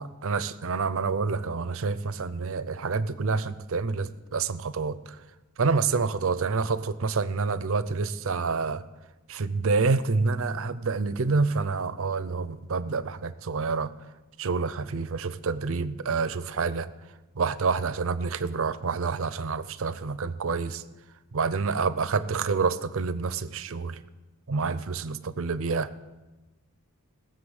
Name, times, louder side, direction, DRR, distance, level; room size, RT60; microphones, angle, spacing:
voice 1, 0.0-5.2 5.6-8.8 9.3-13.9 14.4-16.9 17.4-20.8 21.3-24.0 24.5-25.9, right 4 dB, 65° right, 15 dB, 0.6 m, -28 dB
18.0 x 6.8 x 7.9 m, 1.2 s
head